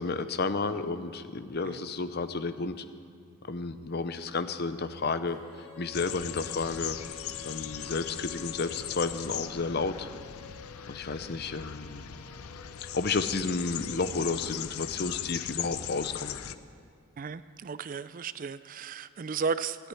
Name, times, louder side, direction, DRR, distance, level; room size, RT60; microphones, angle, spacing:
voice 1, 0.0-2.8 3.5-5.4 5.8-7.0 7.4-10.1 10.9-12.1 12.8-16.4, left 3 dB, 45° left, 11 dB, 0.7 m, -32 dB
Female singing, 5.3-14.4, left 5 dB, 15° left, 3.7 m, -50 dB
sound 1, 5.9-16.5, left 11 dB, 85° left, 0.6 m, -39 dB
voice 2, 17.2-19.9, right 5 dB, 40° right, 15 dB, 0.3 m, -34 dB
14.0 x 8.5 x 9.9 m, 2.2 s
head